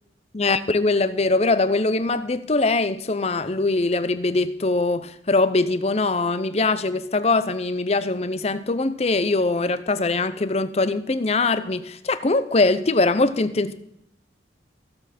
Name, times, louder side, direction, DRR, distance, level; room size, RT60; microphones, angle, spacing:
voice 1, 0.3-13.7, left 3 dB, 35° left, 0.6 m, -22 dB
16.0 x 7.4 x 4.2 m
head